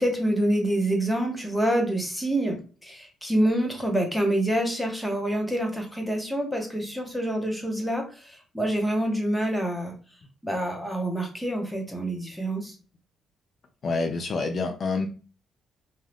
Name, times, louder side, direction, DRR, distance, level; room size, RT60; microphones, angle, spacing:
voice 1, 0.0-9.9 10.4-12.7, right 1 dB, 5° left, 2 dB, 0.9 m, -27 dB
voice 2, 13.8-15.1, left 3 dB, 50° left, 5 dB, 0.5 m, -27 dB
2.6 x 2.3 x 3.3 m, 0.37 s
cardioid pair, 90°, 0 cm